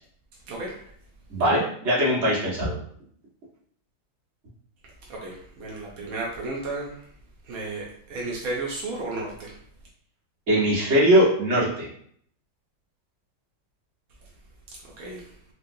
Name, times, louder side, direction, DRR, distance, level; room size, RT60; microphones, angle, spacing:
voice 1, 1.3-2.7 10.5-11.9, equal, 40° right, -7 dB, 1.3 m, -21 dB
voice 2, 5.1-6.9 7.5-9.5 15.0-15.2, right 2 dB, 80° right, -3 dB, 0.8 m, -33 dB
4.5 x 2.1 x 2.6 m, 0.63 s
omnidirectional pair, 2.3 m